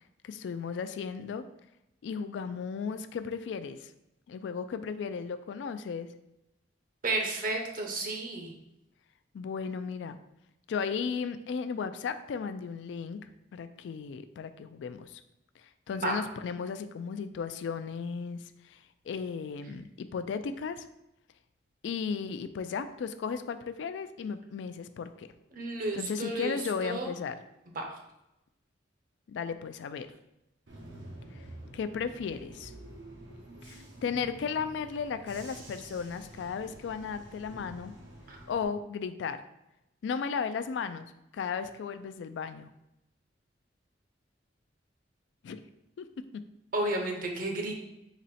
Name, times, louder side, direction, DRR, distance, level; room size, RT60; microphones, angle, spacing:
voice 1, 0.2-1.4 2.0-3.9 4.3-6.1 9.3-10.2 10.7-13.2 13.5-15.2 15.9-18.8 19.1-20.9 21.8-25.3 25.9-27.4 29.3-30.1 31.7-32.7 33.6-37.9 38.5-39.4 40.0-42.7 45.4-45.6 46.0-46.1, left 6 dB, 75° left, 11 dB, 0.3 m, -35 dB
voice 2, 7.0-8.5 15.9-16.1 25.5-27.1 27.7-27.8 38.3-38.4 46.7-47.8, right 2 dB, 50° right, 2 dB, 0.8 m, -32 dB
Bus / Engine, 30.7-38.6, right 1 dB, 85° right, 1.0 m, -48 dB
4.1 x 3.1 x 4.1 m, 0.87 s
head